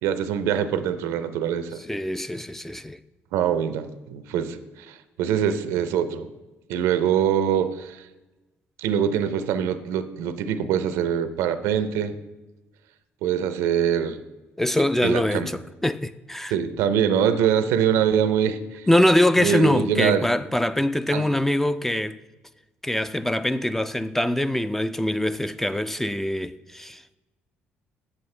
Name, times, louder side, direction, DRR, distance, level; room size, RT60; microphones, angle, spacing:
voice 1, 0.0-1.8 3.3-6.3 6.7-8.0 8.8-12.2 13.2-14.2 15.0-15.5 16.5-18.9 19.4-20.3 21.1-21.2, right 8 dB, 85° right, 0.5 m, -24 dB
voice 2, 1.9-3.0 14.6-16.6 18.9-22.2 22.8-27.2, left 1 dB, 5° left, 0.3 m, -23 dB
7.5 x 7.3 x 3.2 m
cardioid pair, 80°, 5 cm